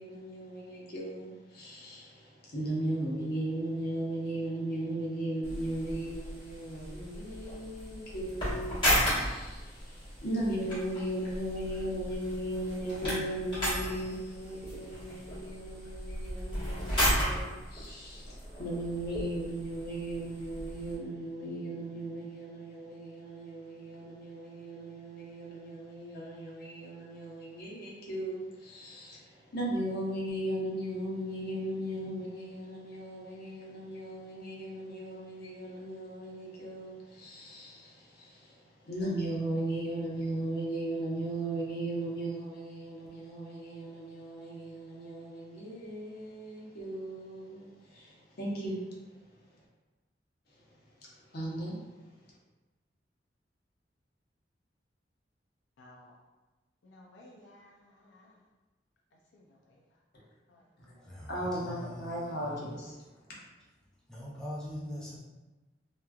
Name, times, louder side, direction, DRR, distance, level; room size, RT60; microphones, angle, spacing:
voice 1, 0.0-48.9 50.5-50.6 51.1-51.8 60.1-60.2 60.8-63.0, right 1 dB, 60° left, 0.8 m, -37 dB
sound 1, 5.4-20.9, equal, 30° left, 1.2 m, -35 dB
voice 2, 55.8-56.1 56.8-58.4 59.1-59.9 60.5-60.6, left 1 dB, 75° left, 0.4 m, -57 dB
voice 3, 60.9-62.7 64.1-65.2, equal, 5° left, 0.4 m, -42 dB
2.9 x 2.3 x 2.2 m
head